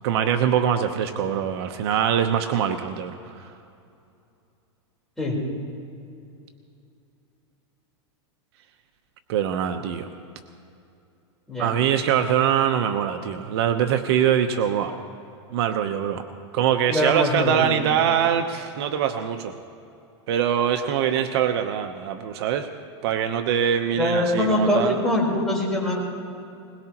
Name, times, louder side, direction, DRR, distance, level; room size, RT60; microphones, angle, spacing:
voice 1, 0.0-3.5 9.3-10.1 11.6-14.9 15.5-16.2 16.5-19.5 20.3-22.7 23.0-25.0, right 9 dB, 60° right, 6 dB, 1.0 m, -23 dB
voice 2, 16.9-18.0 24.0-26.0, left 1 dB, ahead, -5 dB, 4.1 m, -23 dB
21.5 x 21.0 x 3.0 m, 2.6 s
supercardioid pair, 145°, 15 cm